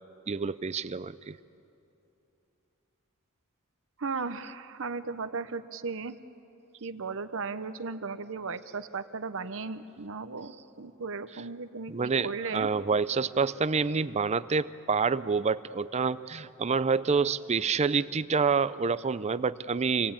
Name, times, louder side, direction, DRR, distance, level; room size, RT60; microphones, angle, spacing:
voice 1, 0.3-1.4 11.9-20.1, right 5 dB, 30° right, 16 dB, 0.5 m, -27 dB
voice 2, 4.0-6.2 6.8-10.5 10.8-12.7, right 4 dB, 60° right, 12 dB, 0.8 m, -36 dB
26.0 x 18.5 x 8.7 m, 2.9 s
head